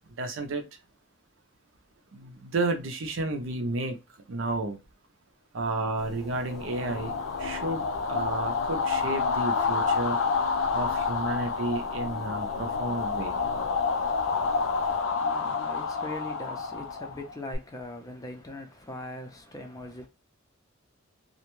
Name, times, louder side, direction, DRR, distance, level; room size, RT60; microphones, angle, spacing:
voice 1, 0.2-0.6 2.1-4.0 4.3-4.8 5.5-10.2 10.7-13.4, right 2 dB, 65° right, 0.6 m, -32 dB
sound 1, 6.0-15.0, equal, ahead, 1.0 m, -47 dB
sound 2, 6.4-17.5, left 5 dB, 75° left, 0.4 m, -29 dB
voice 2, 14.9-20.1, left 1 dB, 20° left, 0.5 m, -41 dB
2.5 x 2.1 x 3.0 m
head